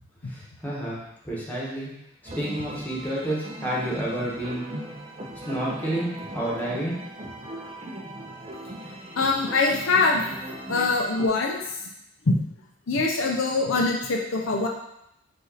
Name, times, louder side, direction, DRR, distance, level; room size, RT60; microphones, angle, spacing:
voice 1, 0.3-1.9 2.2-4.7 5.5-7.0 7.5-7.6, right 1 dB, 10° left, -6 dB, 1.2 m, -30 dB
sound 1, 2.2-11.3, right 1 dB, 30° right, 0.5 m, -38 dB
voice 2, 9.2-11.8 12.3-12.4 12.9-14.7, left 3 dB, 70° left, 0 dB, 0.6 m, -23 dB
5.0 x 2.6 x 4.0 m, 0.80 s
head